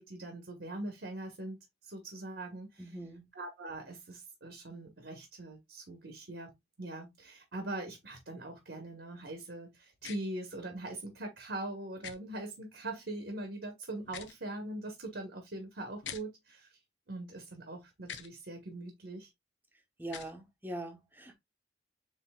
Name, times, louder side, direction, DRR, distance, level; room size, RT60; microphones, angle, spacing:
voice 1, 0.0-1.6 1.8-2.8 3.3-16.8 17.1-19.3, right 2 dB, 70° right, 1.1 m, -42 dB
voice 2, 2.8-3.2 20.0-21.4, right 1 dB, 10° right, 0.9 m, -42 dB
sound 1, 10.0-10.2 12.0-12.2 14.0-14.4 16.0-16.2 18.0-18.3 20.0-20.3, left 8 dB, 80° left, 0.6 m, -44 dB
7.5 x 2.8 x 2.2 m
head